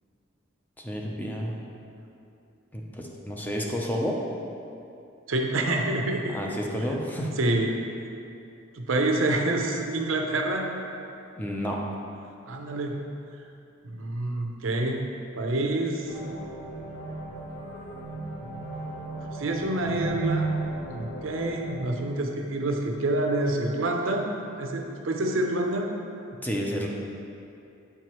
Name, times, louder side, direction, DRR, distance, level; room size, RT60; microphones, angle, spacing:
voice 1, 0.8-1.6 2.7-4.2 6.3-7.3 11.4-11.8 26.3-26.9, equal, 10° left, -1 dB, 0.5 m, -30 dB
voice 2, 5.3-6.4 7.4-7.7 8.7-10.7 12.5-13.0 13.8-15.1 15.4-16.1 19.3-20.6 20.9-24.3 24.6-25.9, right 2 dB, 90° right, 2 dB, 0.7 m, -27 dB
sound 1, 16.1-21.9, right 2 dB, 85° left, 1.1 m, -34 dB
7.7 x 4.6 x 3.0 m, 2.7 s
head